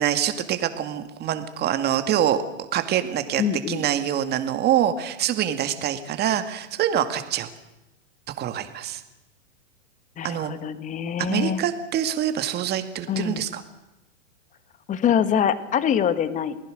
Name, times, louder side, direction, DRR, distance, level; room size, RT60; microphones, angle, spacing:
voice 1, 0.0-2.4 2.7-3.4 3.7-7.5 8.4-9.0 10.2-10.5 11.2-13.6, right 10 dB, 25° right, 9 dB, 2.1 m, -25 dB
voice 2, 3.4-3.8 10.2-11.6 13.1-13.5 14.9-16.6, left 8 dB, 20° left, 13 dB, 1.5 m, -24 dB
28.5 x 19.0 x 6.6 m, 0.95 s
hypercardioid pair, 130°, 38 cm